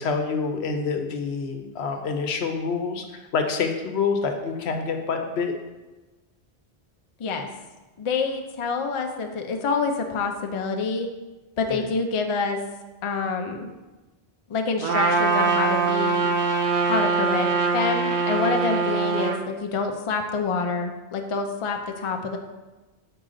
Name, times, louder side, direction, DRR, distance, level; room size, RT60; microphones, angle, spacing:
voice 1, 0.0-5.5 11.7-11.9, left 5 dB, 80° left, 6 dB, 1.0 m, -27 dB
voice 2, 8.0-11.1 11.6-12.6 13.0-13.7 14.5-16.3 16.8-22.4, left 4 dB, 40° left, 4 dB, 0.5 m, -27 dB
Trumpet, 14.8-19.4, right 4 dB, 80° right, 0.9 m, -23 dB
6.4 x 4.7 x 3.8 m, 1.2 s
omnidirectional pair, 1.1 m